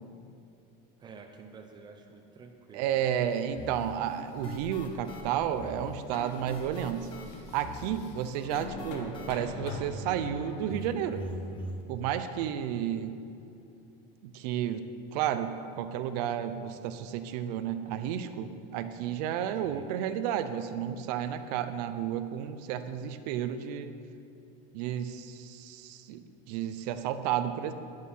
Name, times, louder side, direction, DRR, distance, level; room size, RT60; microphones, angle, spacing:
voice 1, 1.0-3.1 19.6-19.9, right 4 dB, 20° right, 3 dB, 0.7 m, -50 dB
voice 2, 2.7-7.1 7.5-11.3 11.9-13.1 14.2-23.9 24.7-27.7, right 9 dB, 75° right, 10 dB, 0.8 m, -32 dB
sound 1, 3.3-4.0 4.5-5.3 5.7-5.8 6.1-9.8, left 4 dB, 75° left, 2.2 m, -44 dB
sound 2, 3.6-11.8, left 2 dB, 25° left, 1.1 m, -43 dB
13.0 x 10.5 x 5.7 m, 2.7 s
cardioid pair, 175°, 21 cm